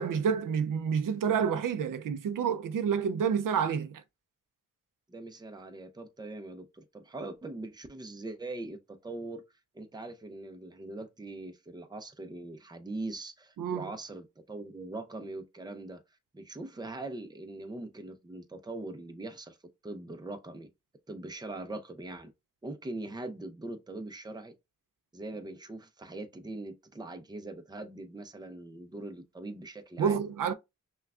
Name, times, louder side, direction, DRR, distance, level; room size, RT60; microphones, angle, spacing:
voice 1, 0.0-4.0 13.6-13.9 30.0-30.5, right 7 dB, 90° right, 0.5 m, -29 dB
voice 2, 5.1-9.4 9.7-16.0 16.3-19.6 19.8-20.7 21.1-22.3 22.6-24.5 25.1-30.2, right 2 dB, 15° right, 0.5 m, -41 dB
5.7 x 2.3 x 2.3 m
wide cardioid pair, 100°, 31 cm